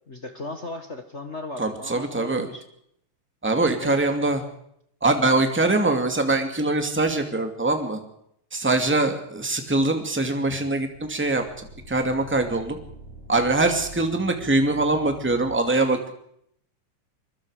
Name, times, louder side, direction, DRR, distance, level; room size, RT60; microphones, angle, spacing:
voice 1, 0.1-2.7 3.7-4.0, left 2 dB, 40° left, 6 dB, 0.9 m, -36 dB
voice 2, 1.6-2.5 3.4-4.4 5.0-8.0 8.5-11.4 11.9-12.8 13.3-16.1, right 2 dB, 5° right, 5 dB, 1.9 m, -23 dB
sound 1, 10.9-15.6, right 1 dB, 55° right, 7.6 m, -44 dB
24.5 x 22.5 x 5.0 m, 0.71 s
omnidirectional pair, 3.7 m